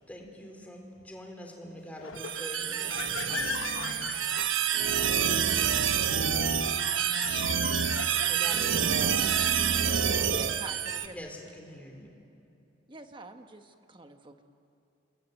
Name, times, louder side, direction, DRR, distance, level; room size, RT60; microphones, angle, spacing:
voice 1, 0.1-3.6 8.1-9.8 11.1-12.1, equal, 10° left, 2 dB, 3.5 m, -44 dB
sound 1, 2.0-5.1 6.7-8.7, left 6 dB, 80° left, 0.9 m, -39 dB
sound 2, 2.2-11.1, right 8 dB, 85° right, 1.1 m, -27 dB
voice 2, 4.5-4.6, left 2 dB, 50° left, 2 dB, 3.2 m, -66 dB
voice 3, 10.2-11.3 12.9-14.4, right 2 dB, 25° right, 6 dB, 1.3 m, -45 dB
29.0 x 22.0 x 9.2 m, 2.8 s
head